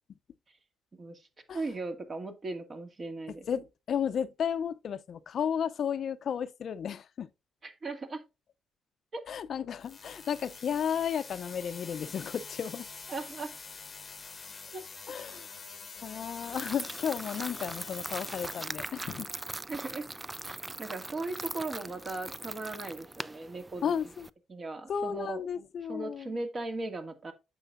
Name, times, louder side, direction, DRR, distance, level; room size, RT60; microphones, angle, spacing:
voice 1, 0.9-1.3 1.5-3.5 7.6-8.2 9.1-9.2 13.1-13.5 14.7-14.8 19.7-20.1 20.4-23.9 24.5-25.4 25.9-27.3, right 3 dB, 40° right, 2.2 m, -38 dB
voice 2, 3.3-7.3 9.3-12.9 15.1-15.6 16.0-19.3 23.8-24.3 24.9-26.4, left 8 dB, 60° left, 0.6 m, -33 dB
sound 1, 9.8-18.6, left 4 dB, 35° left, 0.9 m, -45 dB
sound 2, 16.3-24.3, right 2 dB, 15° right, 0.4 m, -41 dB
9.0 x 7.0 x 2.5 m
cardioid pair, 90°, 0 cm